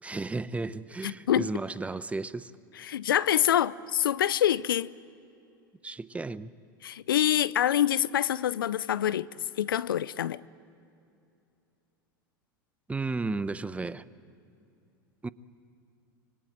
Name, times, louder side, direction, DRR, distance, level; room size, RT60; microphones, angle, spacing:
voice 1, 0.0-2.5 5.8-6.5 12.9-14.0 15.2-15.3, right 3 dB, 10° right, 0.8 m, -33 dB
voice 2, 1.0-1.5 2.8-4.9 6.8-10.4, left 11 dB, 80° left, 0.6 m, -26 dB
26.0 x 24.5 x 9.2 m
hypercardioid pair, 90°, 11 cm